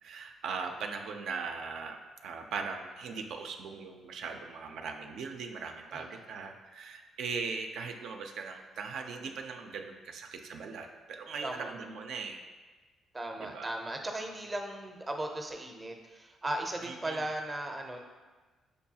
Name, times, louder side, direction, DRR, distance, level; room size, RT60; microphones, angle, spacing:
voice 1, 0.0-12.4 13.4-13.7 16.8-17.2, right 5 dB, 75° right, 5 dB, 0.4 m, -39 dB
voice 2, 5.9-6.2 11.4-11.7 13.1-18.0, right 1 dB, 20° right, 3 dB, 0.5 m, -37 dB
6.4 x 2.3 x 2.7 m, 1.3 s
cardioid pair, 90°, 0 cm